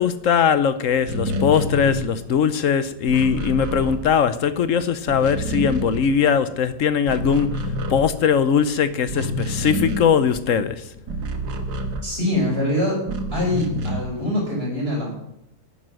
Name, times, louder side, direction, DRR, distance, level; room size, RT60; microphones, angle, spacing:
voice 1, 0.0-7.5 7.9-10.8, left 7 dB, 60° left, 12 dB, 1.0 m, -20 dB
sound 1, 1.0-4.6 4.9-6.6 6.9-12.5 13.0-14.3, equal, 70° right, 1.7 m, -28 dB
voice 2, 12.0-13.0 13.3-15.1, left 1 dB, 35° right, -3 dB, 5.9 m, -23 dB
11.5 x 9.3 x 6.4 m, 0.78 s
omnidirectional pair, 1.8 m